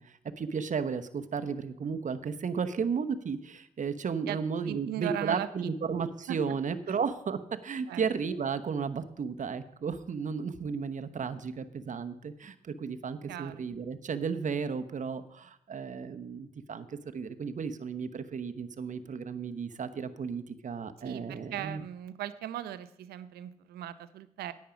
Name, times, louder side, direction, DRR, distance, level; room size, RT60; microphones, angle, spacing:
voice 1, 0.0-21.8, right 6 dB, 55° right, 10 dB, 1.0 m, -34 dB
voice 2, 4.3-5.7 6.3-6.4 6.9-7.0 7.9-8.0 13.3-13.6 21.0-24.5, right 12 dB, 90° right, 13 dB, 0.6 m, -38 dB
10.5 x 8.5 x 5.1 m, 0.73 s
supercardioid pair, 50°, 16 cm